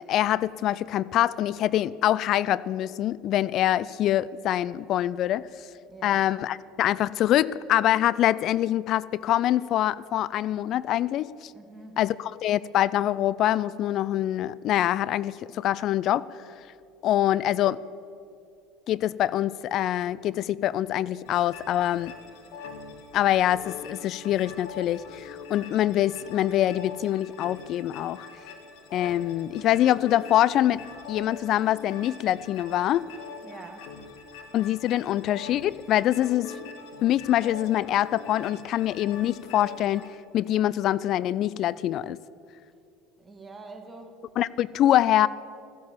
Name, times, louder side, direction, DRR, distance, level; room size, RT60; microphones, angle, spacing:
voice 1, 0.0-5.7 6.0-11.5 12.0-16.3 17.0-17.8 18.9-22.1 23.1-28.3 28.9-30.8 31.1-33.1 34.5-36.5 37.0-40.0 40.3-42.2 44.4-45.3, left 12 dB, 55° left, 19 dB, 0.3 m, -24 dB
voice 2, 5.9-6.2 11.5-12.0 33.4-33.9 43.2-44.2, right 3 dB, 20° right, 4 dB, 2.1 m, -45 dB
sound 1, 21.2-40.1, left 5 dB, 70° left, 1.7 m, -43 dB
14.0 x 10.5 x 7.2 m, 2.5 s
hypercardioid pair, 75°, 0 cm